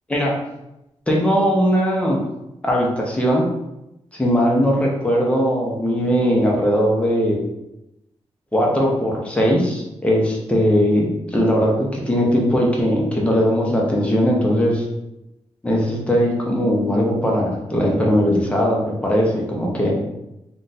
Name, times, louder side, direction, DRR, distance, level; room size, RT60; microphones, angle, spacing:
voice 1, 1.1-2.2 2.6-3.4 4.2-7.4 8.5-14.8 15.6-19.9, equal, 10° left, -2 dB, 0.6 m, -19 dB
2.5 x 2.2 x 3.9 m, 0.89 s
wide cardioid pair, 170°, 12 cm